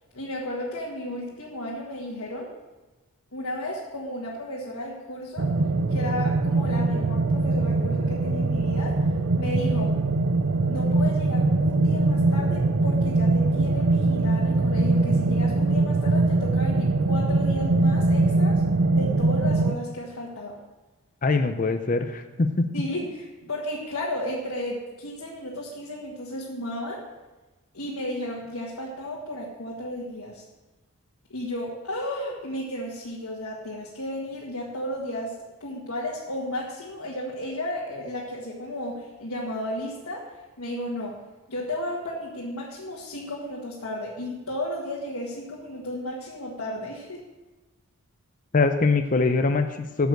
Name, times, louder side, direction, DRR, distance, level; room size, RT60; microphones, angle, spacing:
voice 1, 0.1-2.5 3.3-5.5 5.9-9.0 9.4-9.9 10.7-18.6 18.9-20.6 22.7-27.1 27.7-30.4 31.3-35.3 35.6-40.3 40.6-41.2 41.5-47.2, left 1 dB, 85° left, -5 dB, 1.7 m, -33 dB
sound 1, 5.4-19.8, right 2 dB, 55° right, 0.5 m, -22 dB
voice 2, 21.2-22.7 48.5-50.1, left 3 dB, 35° left, 7 dB, 0.5 m, -23 dB
9.1 x 7.0 x 6.5 m, 1.1 s
head